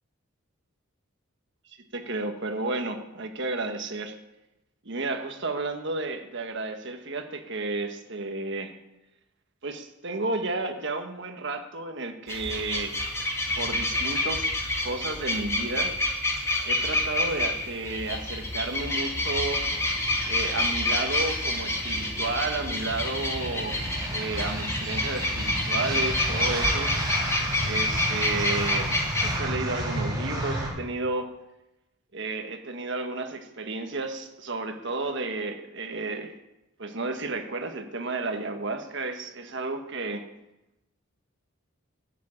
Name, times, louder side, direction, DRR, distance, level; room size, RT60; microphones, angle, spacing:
voice 1, 1.9-4.2 4.8-8.7 9.6-12.9 13.6-14.5 14.8-15.9 16.6-19.6 20.3-23.8 24.1-26.9 27.6-31.3 32.1-36.3 36.8-40.2, right 3 dB, 60° right, 6 dB, 1.5 m, -32 dB
sound 1, 12.3-29.4, left 1 dB, 15° left, 2.2 m, -28 dB
sound 2, 14.9-30.7, right 1 dB, 20° right, 4.8 m, -34 dB
12.5 x 7.5 x 8.8 m, 0.94 s
head